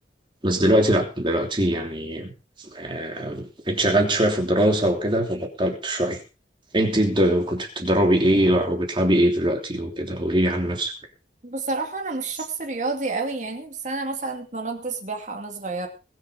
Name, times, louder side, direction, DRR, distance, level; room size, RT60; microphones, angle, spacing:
voice 1, 0.4-2.3 2.7-6.2 6.7-10.9, right 1 dB, 30° right, 2 dB, 3.2 m, -22 dB
voice 2, 11.4-15.9, right 3 dB, 45° right, 3 dB, 2.5 m, -29 dB
21.0 x 7.4 x 5.1 m, 0.33 s
head